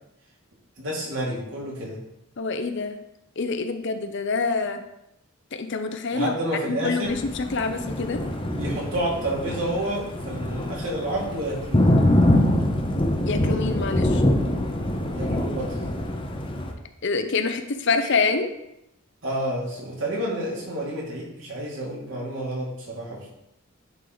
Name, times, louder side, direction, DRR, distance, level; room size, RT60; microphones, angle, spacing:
voice 1, 0.8-2.0 6.1-7.1 8.5-11.9 15.1-15.7 19.2-23.3, right 1 dB, 60° right, -4 dB, 2.7 m, -29 dB
voice 2, 2.4-3.0 3.4-4.8 5.5-6.3 6.8-8.2 13.2-14.2 17.0-18.5, left 4 dB, 55° left, 7 dB, 0.6 m, -26 dB
Thunder, 7.0-16.7, left 1 dB, 25° left, 0.7 m, -24 dB
9.9 x 4.6 x 3.9 m, 0.84 s
head